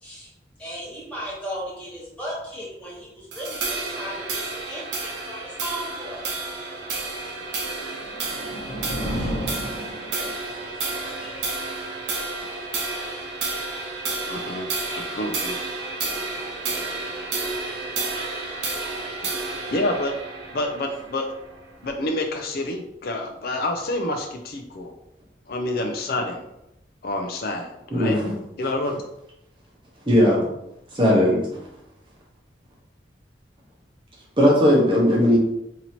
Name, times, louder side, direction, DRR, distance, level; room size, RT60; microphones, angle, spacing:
voice 1, 0.6-6.3 9.1-9.6 10.1-10.3 10.6-11.5, equal, 5° left, -7 dB, 1.2 m, -36 dB
sound 1, 3.3-21.9, right 3 dB, 70° right, 0.6 m, -31 dB
sound 2, 7.8-10.6, equal, 85° left, 0.9 m, -32 dB
voice 2, 14.2-14.7 15.0-15.6 19.3-20.2 20.5-21.3 21.8-25.0 25.5-26.5 27.0-28.2 28.6-29.0, left 1 dB, 55° left, 3 dB, 0.4 m, -28 dB
voice 3, 27.9-28.3 30.1-30.4 30.9-31.4 34.4-35.4, equal, 30° right, -3 dB, 0.8 m, -17 dB
2.8 x 2.7 x 4.2 m, 0.84 s
head